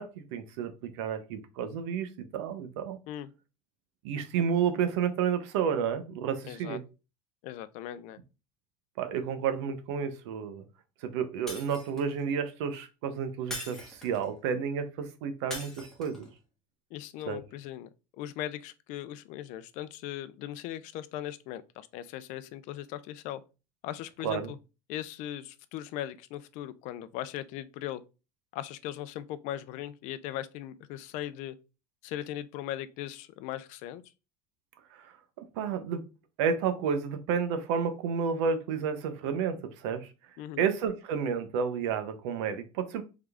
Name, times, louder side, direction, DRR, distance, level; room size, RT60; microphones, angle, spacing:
voice 1, 0.0-3.0 4.0-6.8 9.0-10.6 11.0-16.3 17.3-17.4 24.2-24.5 34.9-36.0 36.4-40.1 40.6-43.0, right 7 dB, 90° right, 0.8 m, -31 dB
voice 2, 6.4-6.8 7.4-8.2 16.9-17.9 18.2-23.4 23.8-24.6 24.9-28.0 28.5-31.6 32.0-34.0 40.4-40.6, left 12 dB, 60° left, 0.5 m, -39 dB
Shatter, 11.5-12.2 13.5-14.3 15.5-16.3, left 1 dB, 5° left, 1.6 m, -41 dB
3.7 x 3.4 x 3.4 m
cardioid pair, 140°, 14 cm